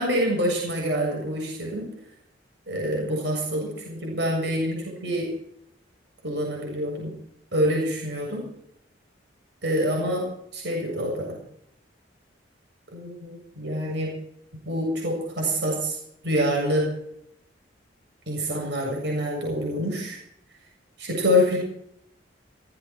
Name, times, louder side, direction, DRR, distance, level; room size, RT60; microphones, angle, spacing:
voice 1, 0.0-1.9 2.7-5.3 6.2-7.2 7.5-8.5 9.6-10.3 10.5-11.4 12.9-14.1 14.7-16.0 16.2-16.9 18.3-20.2 21.0-21.6, equal, 60° right, -1 dB, 7.3 m, -26 dB
17.0 x 16.5 x 4.5 m, 0.72 s
head